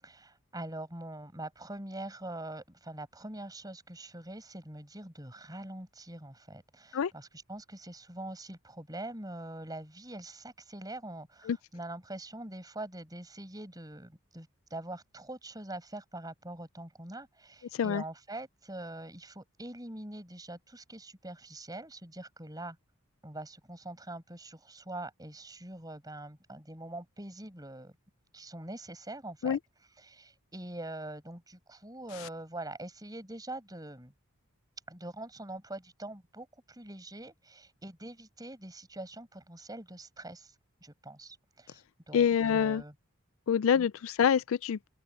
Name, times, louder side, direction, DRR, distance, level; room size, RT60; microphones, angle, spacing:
voice 1, 0.0-22.8 23.2-27.9 28.3-29.6 30.0-34.1 34.9-40.5 40.8-41.8 42.1-42.9 43.8-43.9, right 1 dB, 15° right, 7.3 m, -44 dB
voice 2, 17.7-18.0 29.4-29.6 42.1-42.8 43.5-44.9, left 7 dB, 65° left, 0.3 m, -26 dB
open air
head